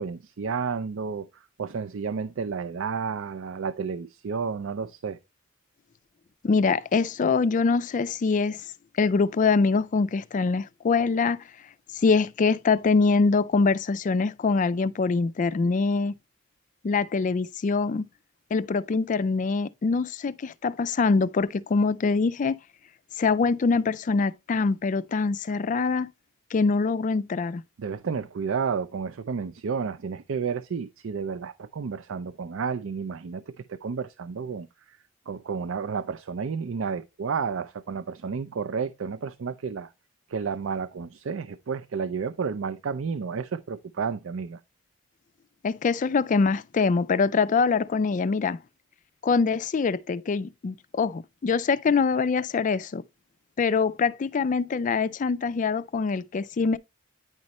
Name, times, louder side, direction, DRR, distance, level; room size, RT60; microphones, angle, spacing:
voice 1, 0.0-5.2 27.8-35.0 35.3-39.9 40.3-44.6, right 5 dB, 65° right, 0.4 m, -31 dB
voice 2, 6.4-8.6 9.0-11.4 11.9-16.1 16.8-18.1 18.5-22.6 23.2-26.1 26.5-27.6 45.6-48.6 49.2-53.0 53.6-56.8, left 4 dB, 35° left, 0.3 m, -24 dB
9.6 x 5.3 x 3.0 m
head